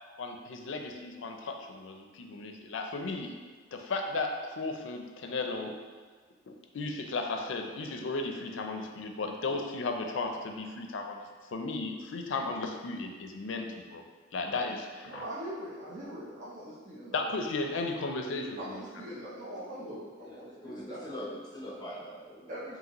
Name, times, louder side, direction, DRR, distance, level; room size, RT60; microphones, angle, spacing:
voice 1, 0.2-3.4 3.7-5.7 6.5-11.3 11.5-14.0 14.3-15.2 17.1-18.8, left 3 dB, 70° left, 4 dB, 0.4 m, -35 dB
voice 2, 15.0-17.2 18.6-21.0 22.5-22.8, equal, 40° right, -9 dB, 0.6 m, -42 dB
voice 3, 20.2-22.5, equal, 20° left, -4 dB, 0.7 m, -42 dB
5.1 x 2.8 x 3.0 m, 1.5 s
head